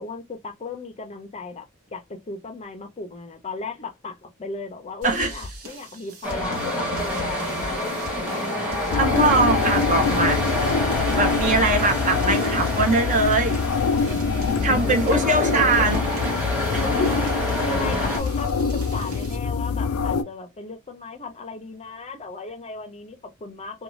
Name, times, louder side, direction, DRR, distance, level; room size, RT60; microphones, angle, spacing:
voice 1, 0.0-8.5 14.6-16.0 16.8-23.8, left 3 dB, 30° left, 0.5 m, -36 dB
sound 1, 5.0-19.4, left 1 dB, 75° right, 1.1 m, -39 dB
sound 2, 6.2-18.2, left 1 dB, 5° right, 1.1 m, -27 dB
voice 2, 8.5-10.6 11.1-13.6 13.9-14.3 14.6-16.0 16.7-16.9, right 3 dB, 35° right, 0.6 m, -22 dB
sound 3, 8.9-20.2, left 5 dB, 80° left, 0.4 m, -25 dB
2.5 x 2.3 x 3.0 m
head